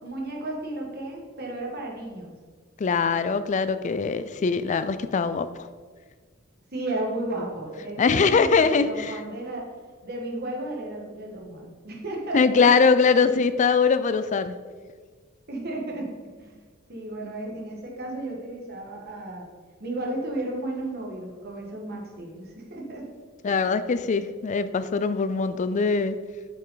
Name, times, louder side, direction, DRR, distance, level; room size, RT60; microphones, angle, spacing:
voice 1, 0.0-2.3 6.7-9.7 10.0-12.7 13.1-13.3 15.5-16.1 16.4-16.6 16.9-19.5 19.8-23.1 23.4-23.5, right 1 dB, 50° right, -1 dB, 1.6 m, -33 dB
voice 2, 2.8-5.5 8.0-9.1 12.3-14.6 23.4-26.2, left 5 dB, 35° left, 12 dB, 0.4 m, -22 dB
8.1 x 5.5 x 3.9 m, 1.5 s
head